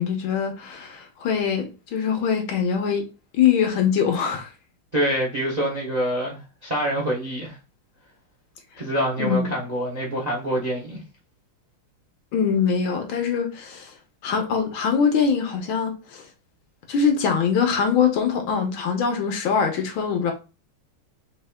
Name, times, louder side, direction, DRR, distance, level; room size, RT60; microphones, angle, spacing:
voice 1, 0.0-4.5 9.2-9.5 12.3-13.9 14.2-16.2 16.9-20.3, left 6 dB, 70° left, 1.7 m, -23 dB
voice 2, 4.9-7.6 8.8-11.0, right 1 dB, 30° right, 0.7 m, -26 dB
4.3 x 3.2 x 3.5 m
omnidirectional pair, 2.4 m